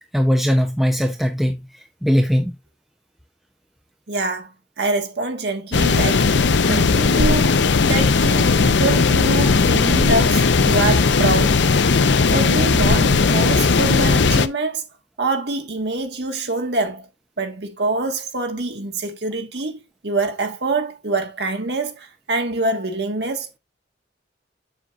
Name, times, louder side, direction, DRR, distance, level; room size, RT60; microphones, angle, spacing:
voice 1, 0.1-2.5, equal, ahead, 0.7 m, -20 dB
voice 2, 4.1-6.4 6.7-7.6 7.8-11.6 12.3-14.8 15.2-17.1 17.4-23.6, right 2 dB, 65° right, 1.6 m, -25 dB
sound 1, 5.7-14.5, left 4 dB, 75° left, 0.6 m, -17 dB
7.5 x 7.3 x 2.5 m
head